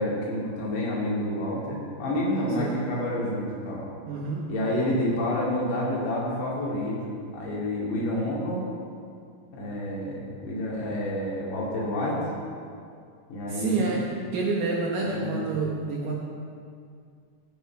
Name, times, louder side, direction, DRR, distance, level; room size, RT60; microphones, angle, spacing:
voice 1, 0.0-3.8 4.5-8.6 9.5-12.2 13.3-14.0 15.0-15.7, left 1 dB, 65° left, -5 dB, 4.5 m, -29 dB
voice 2, 4.1-4.6 13.5-16.1, right 3 dB, 80° right, -3 dB, 1.9 m, -28 dB
14.5 x 8.2 x 4.6 m, 2.3 s
omnidirectional pair, 5.3 m